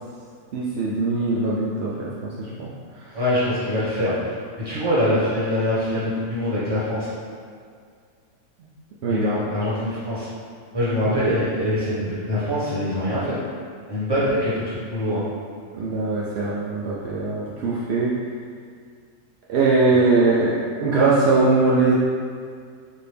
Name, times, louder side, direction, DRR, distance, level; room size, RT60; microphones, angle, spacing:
voice 1, 0.5-3.2 9.0-9.3 11.1-11.2 15.7-18.1 19.5-21.9, right 3 dB, 75° right, -6 dB, 0.6 m, -21 dB
voice 2, 3.1-7.1 9.1-10.3 10.7-13.4 13.9-15.3, left 1 dB, 15° right, -10 dB, 1.1 m, -24 dB
4.1 x 2.7 x 3.4 m, 2.1 s
omnidirectional pair, 1.7 m